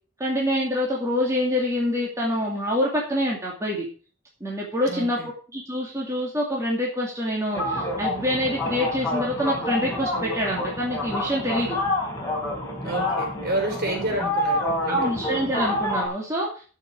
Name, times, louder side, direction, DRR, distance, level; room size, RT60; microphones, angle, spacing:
voice 1, 0.2-3.9 4.4-5.2 5.5-11.8 14.9-16.6, equal, 15° right, -4 dB, 2.5 m, -26 dB
voice 2, 4.8-5.3 12.8-15.1, right 2 dB, 55° right, 2 dB, 4.4 m, -29 dB
sound 1, 7.5-16.1, left 1 dB, 15° left, 4.1 m, -28 dB
13.5 x 6.4 x 4.7 m, 0.38 s
head